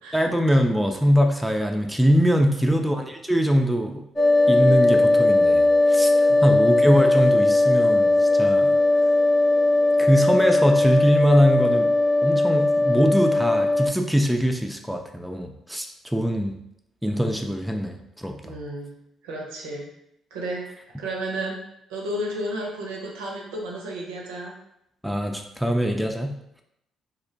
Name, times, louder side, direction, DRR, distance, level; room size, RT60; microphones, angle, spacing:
voice 1, 0.1-4.0 4.5-6.1 6.4-8.8 10.0-11.9 12.2-15.9 16.1-16.6 17.0-18.6 25.0-26.4, equal, 5° right, 3 dB, 0.3 m, -22 dB
voice 2, 2.4-2.8 6.3-6.5 18.4-19.0 19.2-19.9 20.3-20.7 21.0-21.6 21.9-24.5, right 1 dB, 75° right, -1 dB, 0.4 m, -32 dB
sound 1, 4.2-13.9, left 2 dB, 15° left, 0.7 m, -19 dB
2.4 x 2.0 x 2.6 m, 0.79 s
hypercardioid pair, 45°, 0 cm